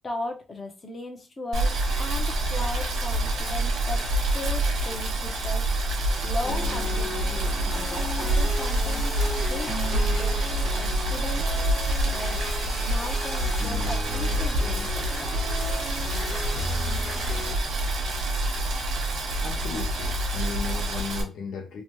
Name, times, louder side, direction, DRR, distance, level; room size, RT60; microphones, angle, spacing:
voice 1, 0.0-4.0 4.3-5.6 6.2-9.1 9.5-10.4 10.7-11.4 12.0-12.4 12.8-15.3, left 2 dB, 30° left, 0.7 m, -37 dB
Boiling, 1.5-21.2, right 1 dB, 80° right, 0.9 m, -27 dB
sound 1, 6.4-17.5, left 1 dB, 55° left, 1.2 m, -35 dB
sound 2, 7.2-11.7 12.1-14.1, right 3 dB, 35° right, 0.4 m, -45 dB
voice 2, 19.4-21.8, left 5 dB, 80° left, 0.6 m, -35 dB
3.0 x 2.2 x 3.0 m
cardioid pair, 140°, 0 cm